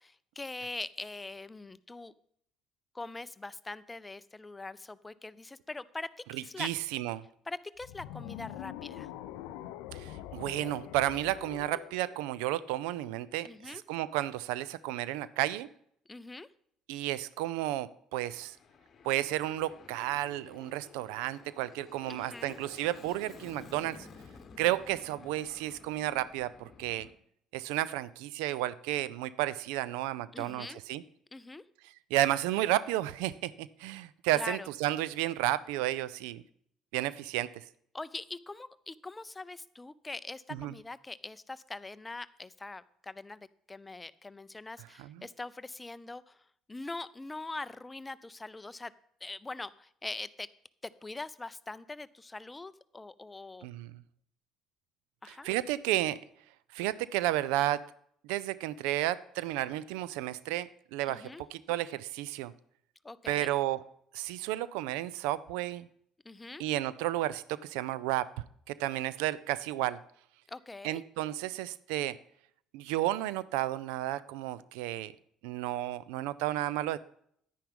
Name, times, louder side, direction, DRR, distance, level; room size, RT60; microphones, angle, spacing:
voice 1, 0.0-2.1 2.9-6.7 7.5-9.1 13.4-13.8 16.1-16.5 22.1-22.6 30.3-30.8 31.3-31.6 34.3-34.7 37.9-46.4 46.7-48.9 49.2-50.5 50.8-53.7 55.2-55.5 61.1-61.4 63.0-63.5 66.2-66.6 70.5-71.0, left 3 dB, 20° left, 17 dB, 0.5 m, -42 dB
voice 2, 6.3-7.2 9.9-15.7 16.9-18.6 19.0-24.1 24.6-27.1 27.5-31.0 32.1-36.4 36.9-37.6 40.5-40.7 45.0-45.2 53.6-53.9 55.3-56.2 56.7-57.8 58.2-62.5 63.3-63.8 64.1-65.9 66.6-68.3 68.7-70.0 70.8-72.2 72.7-75.1 75.4-77.0, right 15 dB, 70° right, 18 dB, 0.4 m, -32 dB
sound 1, 7.8-13.0, left 12 dB, 70° left, 0.5 m, -44 dB
Aircraft, 18.3-27.1, left 5 dB, 45° left, 1.0 m, -53 dB
10.0 x 9.9 x 3.6 m, 0.66 s
hypercardioid pair, 55°, 0 cm